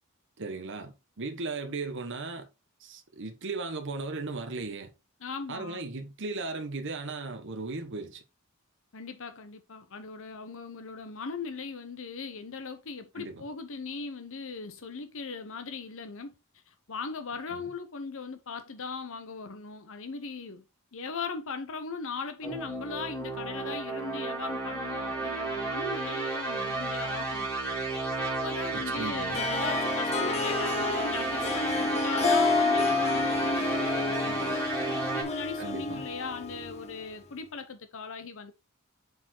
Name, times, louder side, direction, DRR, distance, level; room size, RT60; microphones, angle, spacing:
voice 1, 0.4-2.5 2.8-4.9 5.5-8.2 13.2-13.4 17.5-17.7 28.7-29.4 35.6-36.1, right 3 dB, 60° right, 1.2 m, -36 dB
voice 2, 5.2-5.8 8.9-16.3 16.7-20.6 20.9-27.5 28.4-34.6 35.1-38.5, left 4 dB, 65° left, 0.8 m, -39 dB
sound 1, 22.4-35.2, right 3 dB, 5° left, 2.6 m, -32 dB
Harp, 29.3-37.0, left 3 dB, 30° left, 1.1 m, -29 dB
7.0 x 4.7 x 3.8 m
head